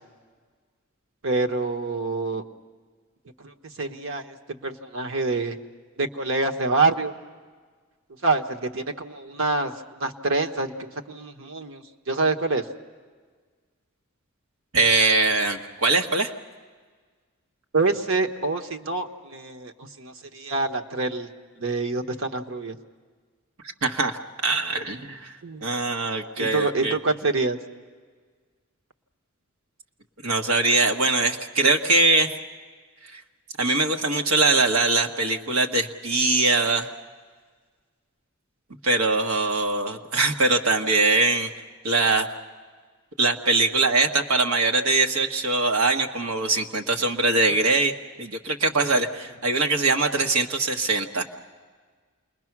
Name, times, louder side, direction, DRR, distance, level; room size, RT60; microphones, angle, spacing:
voice 1, 1.2-2.4 3.4-3.5 3.8-5.5 6.0-7.1 8.2-12.6 17.7-19.7 20.0-21.3 21.6-22.8 25.4-25.6 26.4-27.6, right 3 dB, 65° right, 6 dB, 1.3 m, -26 dB
voice 2, 14.7-16.3 23.8-27.0 30.2-32.3 33.1-33.2 33.6-36.9 38.8-41.5 41.8-42.3 43.2-47.9 48.2-51.2, right 3 dB, 90° right, 4 dB, 1.4 m, -22 dB
28.5 x 21.5 x 6.0 m, 1.5 s
head